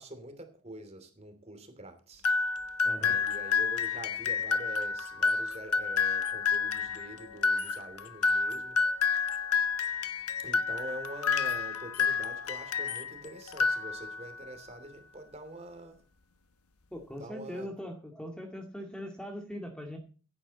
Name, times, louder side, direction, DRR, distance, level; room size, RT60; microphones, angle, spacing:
voice 1, 0.0-2.2 3.0-8.8 9.4-9.5 10.4-16.0 17.2-17.7, right 1 dB, 30° right, 3.0 m, -45 dB
sound 1, 2.2-13.1 13.5-14.3, left 5 dB, 90° left, 1.3 m, -29 dB
voice 2, 2.8-3.2 16.9-20.0, equal, 5° left, 2.2 m, -41 dB
16.5 x 11.0 x 4.2 m
head